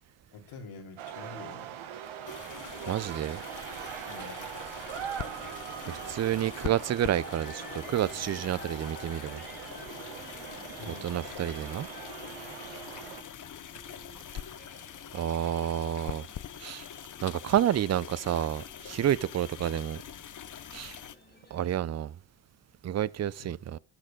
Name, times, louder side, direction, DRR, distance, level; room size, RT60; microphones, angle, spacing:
voice 1, 0.3-1.7 4.1-4.5 10.8-11.2 23.4-23.5, left 4 dB, 85° left, 2.9 m, -46 dB
sound 1, 1.0-13.2, right 9 dB, 80° right, 1.3 m, -42 dB
sound 2, 2.3-21.2, left 9 dB, 40° left, 0.7 m, -44 dB
voice 2, 2.9-3.4 5.9-9.4 10.9-11.9 15.1-16.2 16.6-16.9 17.2-20.0 20.7-21.0 21.5-22.1 22.8-23.8, right 11 dB, 35° right, 0.5 m, -29 dB
sound 3, 5.2-21.8, left 2 dB, 20° left, 1.9 m, -52 dB
10.0 x 6.5 x 5.1 m
cardioid pair, 75°, 48 cm